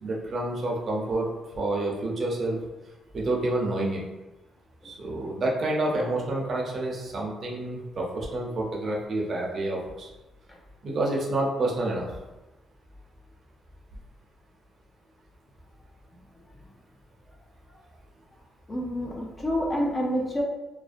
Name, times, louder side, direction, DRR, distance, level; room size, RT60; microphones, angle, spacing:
voice 1, 0.0-1.3 1.5-2.6 3.1-4.0 4.8-10.1 10.8-12.1, right 2 dB, 45° right, -3 dB, 0.6 m, -28 dB
voice 2, 18.7-20.4, equal, 25° left, -2 dB, 0.6 m, -28 dB
2.5 x 2.0 x 2.5 m, 1.1 s
cardioid pair, 90°, 0 cm